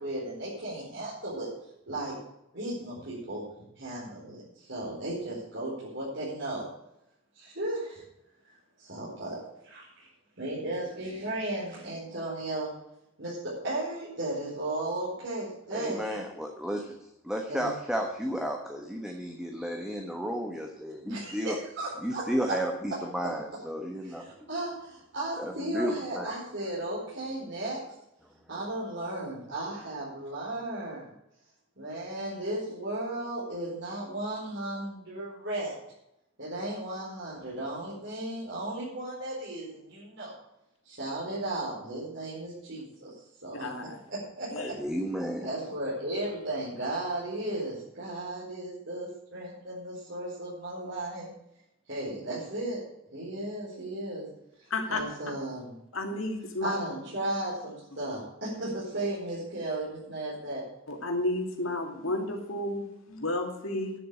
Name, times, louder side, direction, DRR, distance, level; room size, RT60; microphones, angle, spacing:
voice 1, 0.0-1.5 1.9-2.2 2.5-3.4 3.8-6.6 7.3-8.0 8.8-10.1 10.4-12.7 13.2-16.0 17.5-17.7 21.0-22.6 24.0-27.8 28.5-31.1 31.8-35.8 36.4-40.3 40.8-43.7 44.1-44.8 45.4-51.3 51.9-52.8 53.1-54.3 54.9-55.8 56.6-60.7, right 1 dB, 60° right, -8 dB, 4.9 m, -35 dB
voice 2, 15.7-16.9 17.2-21.6 22.0-24.5 25.4-26.3 44.6-45.5, equal, 5° right, 2 dB, 1.2 m, -33 dB
voice 3, 43.6-44.0 44.5-44.7 54.7-55.0 55.9-56.7 60.9-63.9, left 2 dB, 90° left, 3 dB, 2.7 m, -32 dB
10.5 x 7.7 x 8.8 m, 0.83 s
head